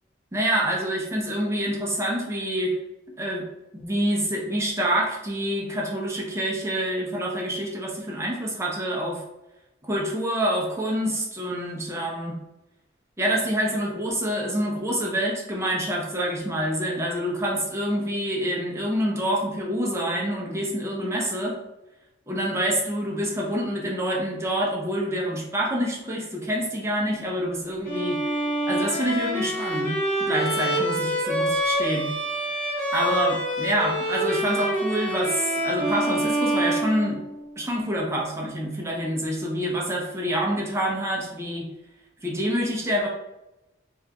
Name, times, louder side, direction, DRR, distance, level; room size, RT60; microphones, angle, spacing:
voice 1, 0.3-2.7 3.2-3.4 3.7-9.2 9.8-12.4 13.2-21.6 22.3-28.3 28.7-32.2 32.9-37.2 37.6-41.7 42.2-43.1, equal, 15° right, -2 dB, 0.6 m, -27 dB
Bowed string instrument, 27.8-37.6, right 1 dB, 15° left, 1.1 m, -26 dB
4.2 x 2.4 x 2.2 m, 0.95 s
head